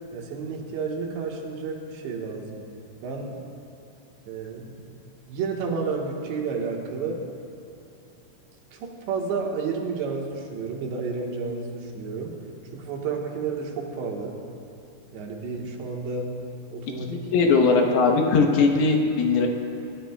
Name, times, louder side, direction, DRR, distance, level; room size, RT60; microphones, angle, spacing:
voice 1, 0.1-2.6 3.0-3.4 4.3-4.8 5.3-7.2 8.7-12.3 12.7-14.3 15.1-16.3 16.7-17.2 17.6-17.8, right 4 dB, 90° right, -1 dB, 3.7 m, -31 dB
voice 2, 17.1-19.5, left 4 dB, 70° left, 2 dB, 2.9 m, -20 dB
25.0 x 13.0 x 2.3 m, 2.9 s
omnidirectional pair, 4.9 m